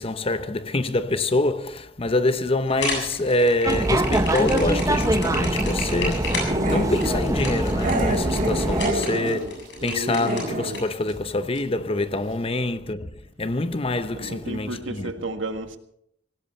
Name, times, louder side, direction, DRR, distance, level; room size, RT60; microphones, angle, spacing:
voice 1, 0.0-15.1, left 2 dB, 30° left, 0.8 m, -25 dB
sound 1, 2.7-10.8, left 2 dB, 65° left, 7.5 m, -32 dB
sound 2, 3.6-8.9, right 1 dB, 20° right, 0.9 m, -24 dB
Growling, 6.5-7.2 7.8-10.8 11.1-11.2 11.6-11.7, right 1 dB, 45° right, 2.5 m, -28 dB
voice 2, 14.1-15.8, right 2 dB, 90° right, 1.7 m, -32 dB
19.0 x 17.0 x 4.4 m
head